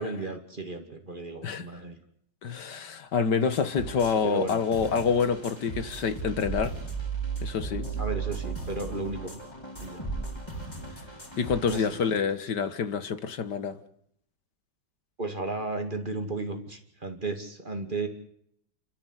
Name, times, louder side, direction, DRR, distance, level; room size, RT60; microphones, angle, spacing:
voice 1, 0.0-1.9 4.2-4.6 8.0-9.4 9.8-10.0 11.7-12.0 15.2-18.1, right 3 dB, 25° right, 2.6 m, -34 dB
voice 2, 2.4-6.7 7.4-7.9 11.4-13.8, left 6 dB, 75° left, 2.0 m, -27 dB
sound 1, 3.4-12.2, right 4 dB, 15° left, 4.4 m, -36 dB
30.0 x 13.5 x 8.1 m
omnidirectional pair, 1.9 m